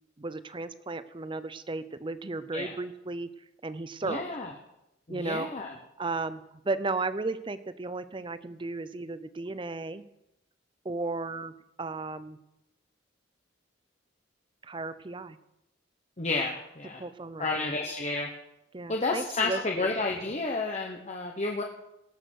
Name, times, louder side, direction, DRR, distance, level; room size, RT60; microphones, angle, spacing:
voice 1, 0.2-3.3 3.6-4.2 5.1-5.5 6.0-10.0 10.8-12.4 14.6-15.4 17.0-17.6 18.7-19.9, right 3 dB, 25° right, 14 dB, 0.6 m, -34 dB
voice 2, 4.0-4.5 5.1-5.7 16.2-17.0 17.4-18.3 18.9-21.6, left 3 dB, 35° left, 1 dB, 1.1 m, -31 dB
18.0 x 6.7 x 6.4 m, 0.88 s
head